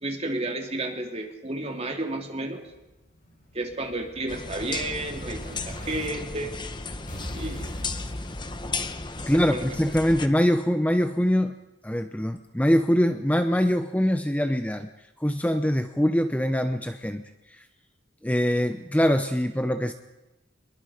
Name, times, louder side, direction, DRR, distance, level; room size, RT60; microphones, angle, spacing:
voice 1, 0.0-2.6 3.5-6.5 7.3-7.7 9.2-9.7, right 2 dB, 35° right, 3 dB, 3.1 m, -32 dB
Explosion, 2.7-6.1 7.1-9.1, left 1 dB, 40° left, 7.0 m, -41 dB
sound 1, 4.3-10.3, left 3 dB, 25° left, 1.2 m, -35 dB
voice 2, 9.3-11.5 11.8-14.9 15.2-17.2 17.5-17.6 18.2-19.9, equal, 10° left, 8 dB, 0.8 m, -23 dB
26.0 x 22.5 x 5.1 m, 1.0 s
head